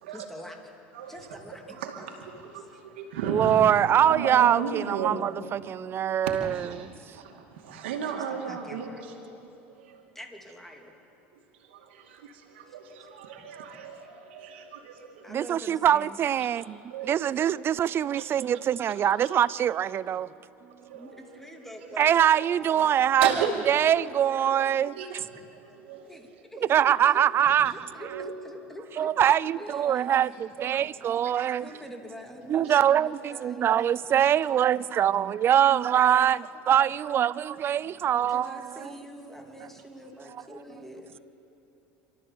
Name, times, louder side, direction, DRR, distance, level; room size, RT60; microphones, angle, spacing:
voice 1, 0.1-0.6 1.1-1.8 2.7-2.8 8.1-9.0 10.1-10.9 12.7-12.8 15.2-16.2 20.9-22.9 26.1-29.1 29.5-30.1 30.5-30.6 31.6-34.0 38.3-41.2, equal, 5° left, 2.9 m, -45 dB
voice 2, 0.9-5.7 6.2-9.1 9.8-10.0 11.6-15.5 16.3-16.5 16.9-17.3 18.2-18.3 19.2-19.3 20.8-21.9 23.2-23.5 23.8-23.9 24.9-26.1 26.7-26.8 27.5-27.6 28.0-28.6 31.4-31.5 32.6-32.8, right 6 dB, 85° right, 2.5 m, -36 dB
voice 3, 3.3-6.9 15.3-16.8 17.0-20.3 22.0-23.3 23.7-25.2 26.7-27.8 29.0-31.7 32.5-38.9, right 10 dB, 40° right, 0.5 m, -23 dB
28.0 x 13.0 x 7.2 m
hypercardioid pair, 90°, 6 cm